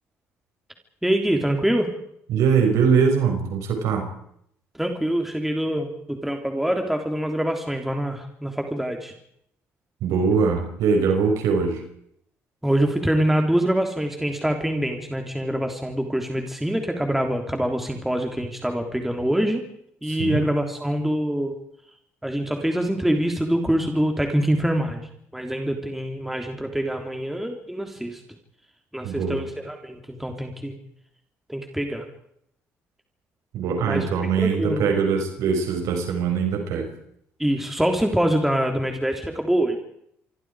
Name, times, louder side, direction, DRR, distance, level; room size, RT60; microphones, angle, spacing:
voice 1, 1.0-1.9 4.8-9.1 12.6-19.6 20.0-21.5 22.2-28.2 28.9-30.7 31.5-32.0 33.8-34.1 34.4-34.9 37.4-39.8, right 1 dB, 5° right, 3 dB, 3.6 m, -25 dB
voice 2, 2.3-4.1 10.0-11.8 20.1-20.4 29.0-29.4 33.5-36.9, right 6 dB, 85° right, 4 dB, 6.3 m, -22 dB
28.5 x 24.5 x 5.0 m, 0.71 s
cardioid pair, 95°, 5 cm